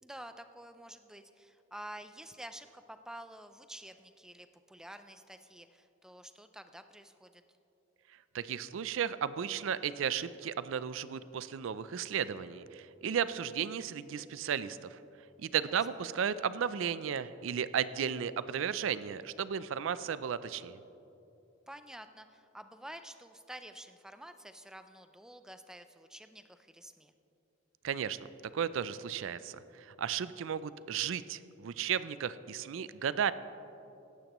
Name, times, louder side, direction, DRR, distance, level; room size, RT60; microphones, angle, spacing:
voice 1, 0.0-7.4 15.6-15.8 21.7-27.1, right 1 dB, 5° right, 9 dB, 0.4 m, -49 dB
voice 2, 8.3-15.0 15.4-20.8 27.8-28.2 28.5-33.3, right 8 dB, 70° right, 15 dB, 0.4 m, -34 dB
16.0 x 12.0 x 3.0 m, 2.9 s
head